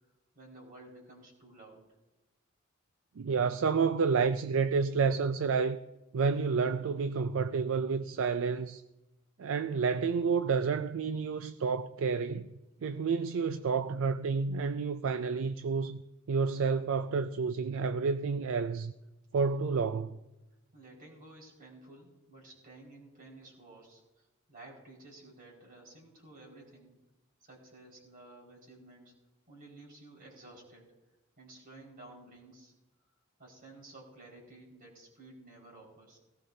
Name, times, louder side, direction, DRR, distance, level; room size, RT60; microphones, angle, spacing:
voice 1, 0.3-1.9 20.7-26.9 27.4-29.1 29.5-30.9 31.4-32.7 33.4-36.2, right 2 dB, 45° right, 4.9 m, -53 dB
voice 2, 3.2-5.8 6.1-8.8 9.4-12.5 12.8-16.0 16.3-18.9 19.3-20.2, right 5 dB, 70° right, 0.4 m, -30 dB
18.0 x 17.0 x 2.7 m
head